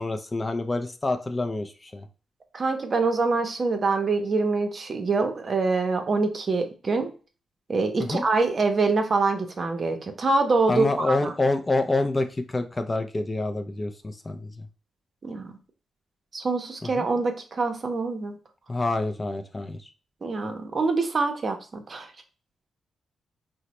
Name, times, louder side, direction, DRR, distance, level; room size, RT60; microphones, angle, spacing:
voice 1, 0.0-2.1 8.0-8.2 10.7-14.7 16.8-17.1 18.7-19.8, left 2 dB, 25° left, 7 dB, 0.4 m, -27 dB
voice 2, 2.5-7.1 7.7-11.3 15.2-15.6 16.3-18.4 20.2-22.1, right 3 dB, 45° right, 6 dB, 0.6 m, -25 dB
3.9 x 2.1 x 3.0 m, 0.35 s
cardioid pair, 85°, 0 cm